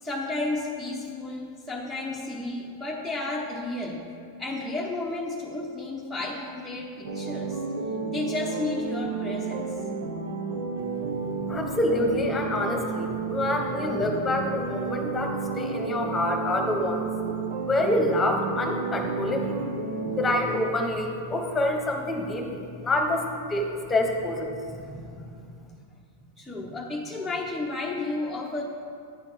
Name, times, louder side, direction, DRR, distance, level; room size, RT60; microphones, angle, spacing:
voice 1, 0.0-4.0 4.4-7.6 8.1-9.7 24.5-25.5 26.4-28.6, left 2 dB, ahead, -6 dB, 1.0 m, -32 dB
sound 1, 7.0-20.4, right 4 dB, 75° right, 1.0 m, -31 dB
voice 2, 11.5-17.1 17.6-19.6 20.2-23.2 23.5-23.6 23.9-24.5, left 1 dB, 20° left, 2 dB, 1.2 m, -26 dB
9.7 x 4.4 x 6.1 m, 2.3 s
hypercardioid pair, 105°, 0 cm